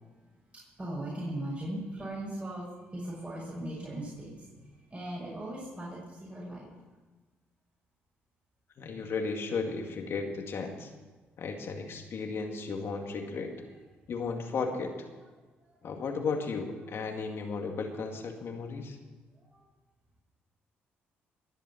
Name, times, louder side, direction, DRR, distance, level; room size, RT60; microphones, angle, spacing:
voice 1, 0.8-6.7 15.6-15.8 16.9-17.0 19.4-19.6, right 1 dB, 30° right, -5 dB, 5.9 m, -39 dB
voice 2, 8.8-10.9 11.4-13.6 14.1-15.1 15.8-19.0, left 4 dB, 60° left, 3 dB, 2.1 m, -34 dB
21.5 x 7.2 x 7.2 m, 1.3 s
supercardioid pair, 70°, 5 cm